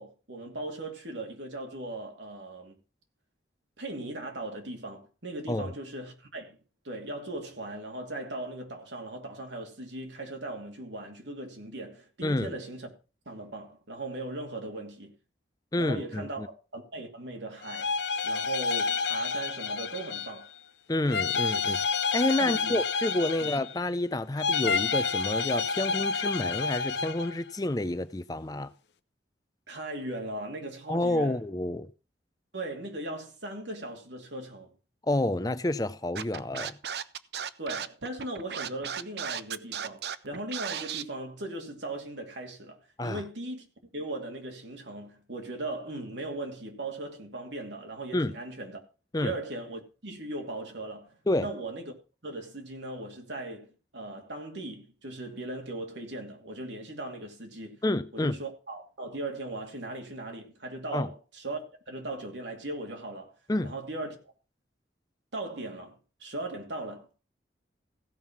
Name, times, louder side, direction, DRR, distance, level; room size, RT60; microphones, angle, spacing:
voice 1, 0.0-2.7 3.8-6.6 6.8-12.9 13.3-15.1 15.8-17.9 18.2-20.5 22.4-22.8 23.4-23.6 29.7-31.4 32.5-34.7 37.6-43.7 43.9-48.8 49.2-51.9 52.2-57.8 58.1-63.3 63.6-64.3 65.3-67.2, right 2 dB, 85° right, 2.7 m, -38 dB
voice 2, 12.2-12.5 15.7-16.5 20.9-21.9 22.1-28.7 30.9-31.9 35.1-36.8 43.0-43.2 48.1-48.3 49.1-49.3 51.3-51.5 57.8-58.4 60.9-61.1 63.5-63.7, left 1 dB, 20° left, 0.5 m, -29 dB
sound 1, 17.6-20.5 21.1-23.9 24.4-27.3, left 5 dB, 75° left, 0.7 m, -29 dB
Scratching (performance technique), 36.2-41.0, right 8 dB, 65° right, 0.6 m, -35 dB
16.0 x 5.6 x 5.9 m
head